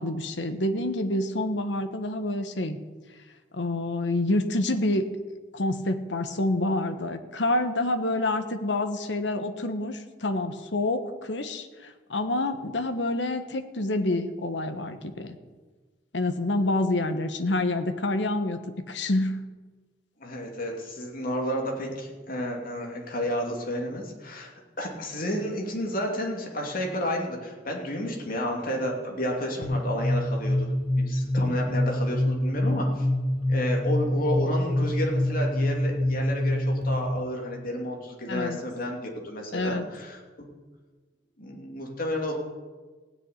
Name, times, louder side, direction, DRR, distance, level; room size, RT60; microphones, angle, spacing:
voice 1, 0.0-2.8 3.5-5.1 5.5-15.3 16.1-19.3 38.3-38.6 39.5-39.8, left 2 dB, 75° left, 8 dB, 1.2 m, -27 dB
voice 2, 20.2-24.5 24.8-33.1 33.5-40.2 41.4-42.4, equal, 50° left, 0 dB, 2.7 m, -31 dB
sound 1, 29.6-37.2, left 1 dB, 30° right, 2.0 m, -26 dB
16.0 x 6.6 x 9.6 m, 1.4 s
head